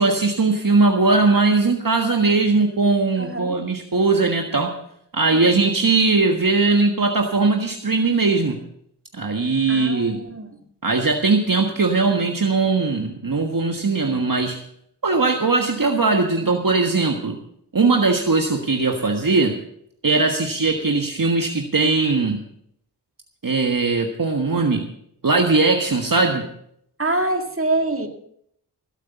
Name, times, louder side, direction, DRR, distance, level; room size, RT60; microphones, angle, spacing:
voice 1, 0.0-4.7 5.1-8.6 9.1-10.2 10.8-14.6 15.0-17.4 17.7-19.5 20.0-22.4 23.4-24.8 25.2-26.4, right 3 dB, 50° right, 3 dB, 1.5 m, -19 dB
voice 2, 3.2-3.6 5.3-5.5 9.7-10.6 27.0-28.1, right 2 dB, 30° right, 5 dB, 2.2 m, -25 dB
16.5 x 8.3 x 7.0 m, 0.70 s
cardioid pair, 45°, 43 cm